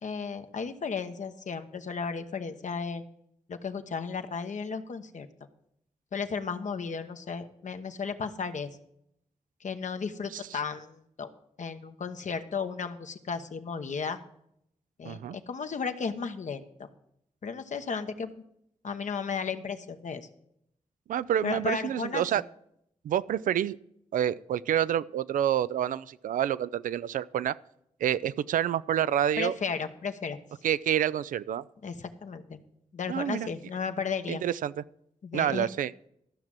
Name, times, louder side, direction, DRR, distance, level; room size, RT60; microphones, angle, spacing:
voice 1, 0.0-3.0 3.5-5.3 6.1-8.8 9.6-11.3 11.6-14.2 15.0-16.9 17.4-18.3 18.8-20.3 21.4-22.2 29.4-30.4 31.8-32.6 32.9-34.4 35.2-35.7, left 5 dB, 65° left, 8 dB, 1.0 m, -34 dB
voice 2, 15.0-15.4 21.1-22.4 23.0-23.8 24.1-27.6 28.0-29.5 30.6-31.6 33.1-33.5 34.3-34.7 35.3-35.9, right 10 dB, 85° right, 17 dB, 0.4 m, -28 dB
13.0 x 6.0 x 7.6 m, 0.75 s
cardioid pair, 45°, 13 cm